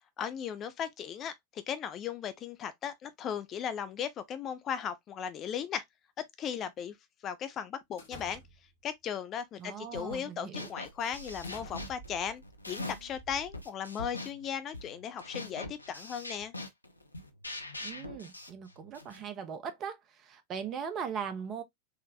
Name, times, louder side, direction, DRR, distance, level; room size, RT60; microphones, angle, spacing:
voice 1, 0.2-5.8 6.4-7.0 7.2-8.4 8.8-16.5, left 8 dB, 30° left, 0.4 m, -37 dB
sound 1, 8.0-8.8 9.6-9.9 10.3-10.5 11.1-14.0, right 1 dB, 65° left, 0.9 m, -50 dB
voice 2, 9.6-10.7 17.8-21.6, right 7 dB, 30° right, 0.6 m, -39 dB
sound 2, 9.9-10.3 10.5-13.2 13.5-19.2, left 2 dB, 85° left, 0.5 m, -43 dB
3.9 x 2.1 x 2.6 m
figure-of-eight pair, 90°, 0 cm